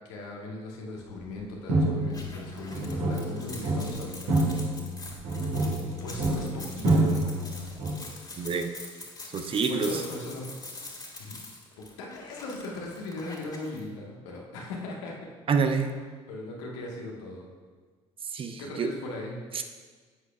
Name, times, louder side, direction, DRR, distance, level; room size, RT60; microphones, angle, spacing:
voice 1, 0.0-4.3 6.0-7.1 9.5-10.4 11.2-11.4 11.8-15.1 16.3-17.5 18.6-19.4, left 2 dB, 70° left, -2 dB, 1.7 m, -39 dB
sound 1, 1.1-1.3 1.7-7.9, right 2 dB, 60° right, 2.3 m, -28 dB
sound 2, 2.1-13.8, left 2 dB, 25° left, 2.5 m, -44 dB
voice 2, 8.4-8.7 9.3-9.9 15.5-15.9 18.3-18.9 19.5-19.6, right 5 dB, 35° right, 6 dB, 0.7 m, -27 dB
11.0 x 8.2 x 2.5 m, 1.5 s
figure-of-eight pair, 55°, 16 cm